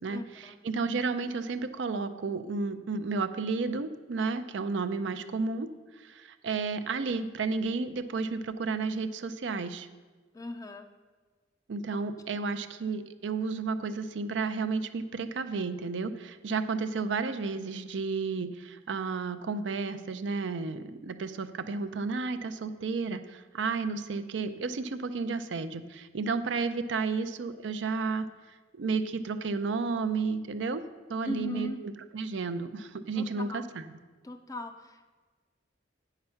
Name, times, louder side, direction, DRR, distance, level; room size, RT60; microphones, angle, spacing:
voice 1, 0.1-0.6 10.3-10.9 31.2-31.8 33.1-33.7 34.2-35.1, left 1 dB, 20° left, 6 dB, 0.4 m, -38 dB
voice 2, 0.6-5.7 6.0-9.9 11.7-30.8 31.1-31.7 32.1-33.8, right 4 dB, 75° right, 11 dB, 0.5 m, -32 dB
8.6 x 5.8 x 5.6 m, 1.4 s
head